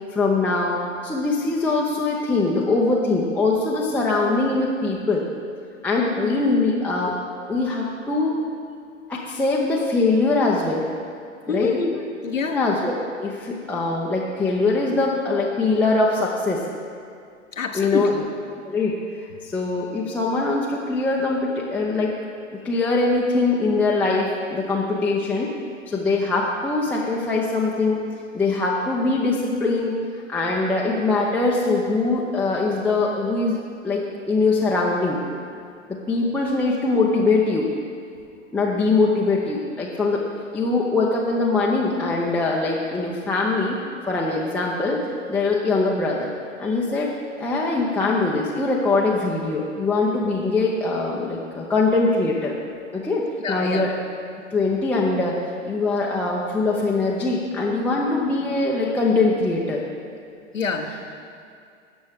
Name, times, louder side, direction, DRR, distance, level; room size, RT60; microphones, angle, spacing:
voice 1, 0.1-5.3 5.8-7.2 7.5-8.4 9.1-10.9 11.5-11.7 12.5-12.9 13.2-16.6 17.7-18.1 18.6-18.9 19.4-22.1 22.6-25.5 25.9-28.0 28.3-29.9 30.3-33.6 33.8-35.2 35.9-37.7 38.5-40.2 40.5-43.8 44.1-45.0 45.3-46.3 46.6-47.1 47.4-52.5 52.9-53.9 54.5-55.4 55.6-59.8, left 3 dB, 5° left, -4 dB, 0.5 m, -22 dB
voice 2, 11.5-12.6 17.6-18.2 53.4-53.8 60.5-60.9, left 4 dB, 90° left, 5 dB, 1.0 m, -26 dB
16.5 x 6.1 x 3.5 m, 2.3 s
figure-of-eight pair, 105°, 38 cm